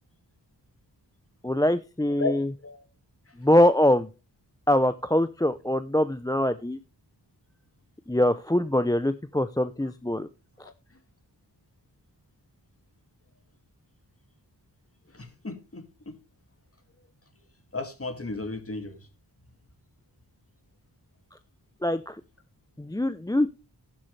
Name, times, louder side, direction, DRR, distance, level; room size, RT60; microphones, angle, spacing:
voice 1, 1.4-2.5 3.4-4.1 4.7-6.8 8.1-10.3 10.6-10.7 21.8-22.2 22.8-23.5, left 1 dB, 10° left, 0.6 m, -23 dB
voice 2, 15.1-16.1 17.7-19.1, left 3 dB, 30° left, 2.3 m, -34 dB
12.0 x 11.0 x 3.3 m
cardioid pair, 50°, 42 cm